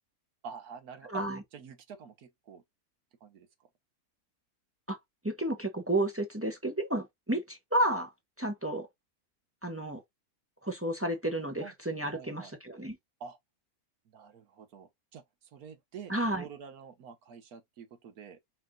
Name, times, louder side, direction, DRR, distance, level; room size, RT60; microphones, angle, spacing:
voice 1, 0.4-1.2 1.5-2.6 3.2-3.5 11.6-11.7 12.1-12.5 13.2-13.4 14.1-15.2 15.5-18.4, right 6 dB, 85° right, 1.5 m, -47 dB
voice 2, 1.1-1.4 4.9-5.0 5.2-8.1 8.4-8.9 9.6-10.0 10.6-13.0 16.1-16.4, right 1 dB, 15° right, 0.6 m, -31 dB
4.9 x 2.6 x 3.6 m
omnidirectional pair, 1.5 m